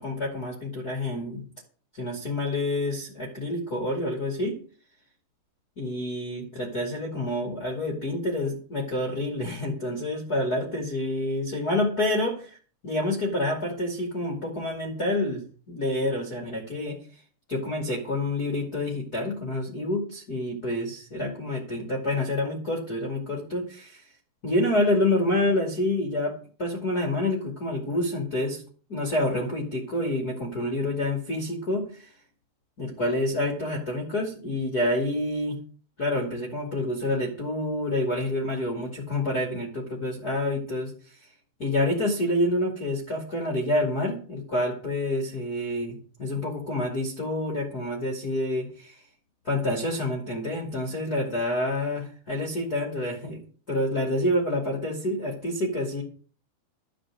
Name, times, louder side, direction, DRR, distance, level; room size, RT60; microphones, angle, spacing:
voice 1, 0.0-1.4 1.9-4.6 5.8-12.6 12.8-17.0 17.5-24.0 24.4-26.3 26.6-28.6 28.9-32.1 32.8-35.6 36.0-41.2 41.6-49.0 49.4-53.4 53.7-56.0, left 1 dB, 25° left, -1 dB, 2.5 m, -28 dB
12.5 x 6.5 x 7.7 m, 0.41 s
omnidirectional pair, 4.8 m